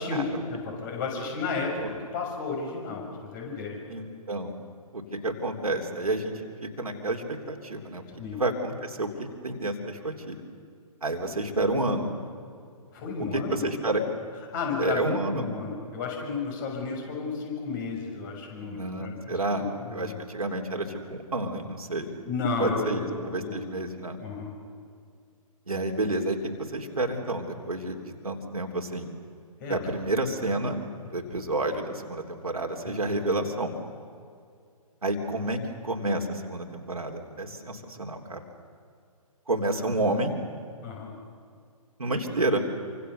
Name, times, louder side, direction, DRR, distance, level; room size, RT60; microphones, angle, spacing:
voice 1, 0.0-3.0 3.3-3.8 8.2-8.4 12.9-13.7 14.5-20.2 22.2-23.6 24.2-24.5 29.6-29.8 32.8-33.0 40.8-41.1, left 4 dB, 35° left, 0 dB, 6.6 m, -32 dB
voice 2, 3.9-4.5 4.9-6.3 6.6-8.0 8.3-10.4 11.0-12.1 13.3-14.0 14.8-15.5 18.6-22.2 22.6-24.2 25.7-26.4 26.7-29.1 29.7-30.8 31.1-33.7 35.0-38.4 39.5-40.3 42.0-42.6, right 2 dB, 75° right, 2 dB, 3.4 m, -30 dB
27.0 x 25.5 x 7.0 m, 2.3 s
figure-of-eight pair, 130°, 19 cm